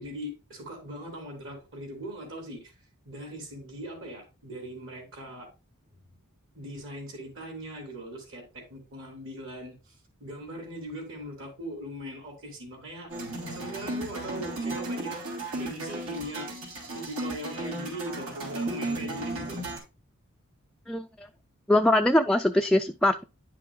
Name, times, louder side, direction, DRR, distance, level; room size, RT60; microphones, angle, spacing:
voice 1, 0.0-2.7 3.0-5.5 6.5-9.8 10.2-13.1 13.5-15.2 15.6-16.5 16.9-19.6, equal, 65° right, 3.2 m, -40 dB
sound 1, 13.1-19.8, right 2 dB, 85° right, 3.2 m, -34 dB
voice 2, 20.9-21.3 21.7-23.2, left 1 dB, 5° left, 0.3 m, -22 dB
10.0 x 5.7 x 2.3 m
head